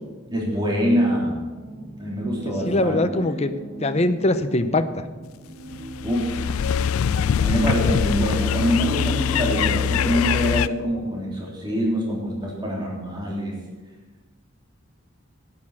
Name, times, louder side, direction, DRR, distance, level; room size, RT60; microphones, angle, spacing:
voice 1, 0.3-1.5 2.0-3.0 6.0-6.3 7.4-13.5, equal, 20° right, -4 dB, 3.4 m, -24 dB
sound 1, 1.5-10.1, right 2 dB, 80° right, 4.3 m, -37 dB
voice 2, 2.7-3.5 3.8-5.1, left 2 dB, 30° left, 10 dB, 0.7 m, -22 dB
sound 2, 5.7-10.7, left 8 dB, 85° left, 0.4 m, -23 dB
11.0 x 9.8 x 7.1 m, 1.3 s
head